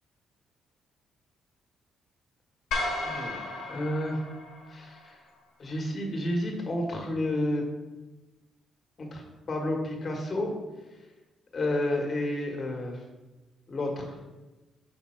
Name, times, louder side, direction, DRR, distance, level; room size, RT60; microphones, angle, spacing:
sound 1, 2.7-5.1, left 2 dB, 90° left, 1.1 m, -34 dB
voice 1, 3.0-4.2 4.7-5.2 5.6-7.6 9.0-9.2 9.5-10.5 11.5-13.0 13.7-14.2, left 1 dB, 40° left, 2 dB, 1.3 m, -30 dB
5.2 x 4.1 x 4.3 m, 1.1 s
cardioid pair, 90°, 0 cm